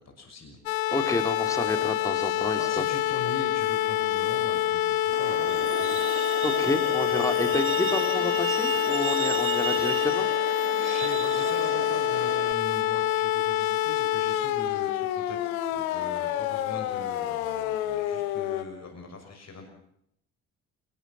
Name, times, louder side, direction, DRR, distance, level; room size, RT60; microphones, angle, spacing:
voice 1, 0.2-0.6 2.5-6.1 10.7-19.7, left 3 dB, 35° left, 4 dB, 6.3 m, -41 dB
sound 1, 0.7-18.6, left 12 dB, 70° left, 1.7 m, -27 dB
voice 2, 0.9-2.8 6.4-10.3, left 1 dB, 5° left, 6 dB, 4.2 m, -30 dB
Truck, 5.1-12.5, right 8 dB, 30° right, 1.0 m, -34 dB
28.0 x 20.5 x 6.1 m, 0.73 s
figure-of-eight pair, 45°, 43 cm